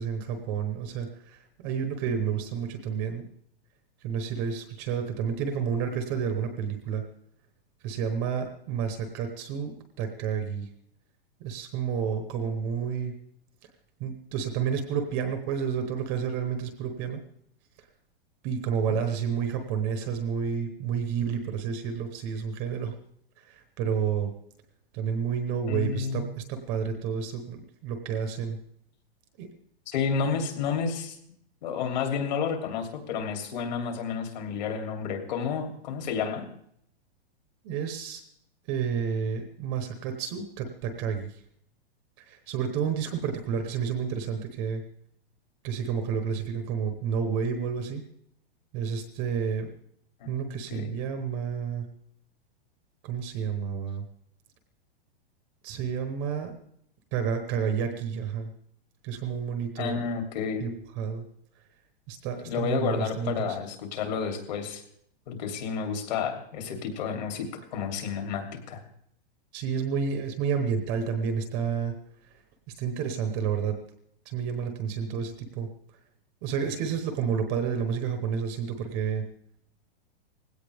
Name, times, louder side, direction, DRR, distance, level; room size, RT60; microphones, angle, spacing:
voice 1, 0.0-3.2 4.0-7.0 7.8-10.7 11.4-13.1 14.0-17.2 18.4-23.0 23.4-24.3 24.9-28.6 29.4-29.5 37.6-38.2 38.7-41.4 42.2-44.8 45.6-48.0 48.7-49.7 50.2-51.8 53.0-54.0 55.6-56.5 57.1-58.5 59.0-60.1 60.6-60.7 61.0-61.2 62.1-63.6 69.5-72.0 72.8-73.8 74.2-75.7 76.4-79.2, right 7 dB, 20° right, 7 dB, 1.0 m, -30 dB
voice 2, 25.7-26.3 29.9-31.2 31.6-36.5 50.2-51.0 59.8-60.7 62.4-64.8 65.3-68.8, left 6 dB, 45° left, 4 dB, 3.0 m, -31 dB
19.5 x 16.5 x 3.5 m, 0.70 s
supercardioid pair, 180°, 30 cm